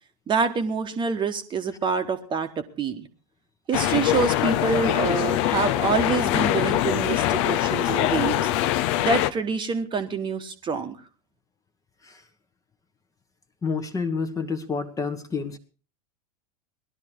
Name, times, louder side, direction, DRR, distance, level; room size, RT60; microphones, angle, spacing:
voice 1, 0.3-3.1 3.7-8.5 9.0-11.0, right 5 dB, 25° right, 8 dB, 1.3 m, -26 dB
sound 1, 3.7-9.3, left 13 dB, 45° left, 0.9 m, -23 dB
voice 2, 13.6-15.6, left 5 dB, 15° left, 7 dB, 1.3 m, -29 dB
18.0 x 12.0 x 4.6 m, 0.38 s
figure-of-eight pair, 90°, 21 cm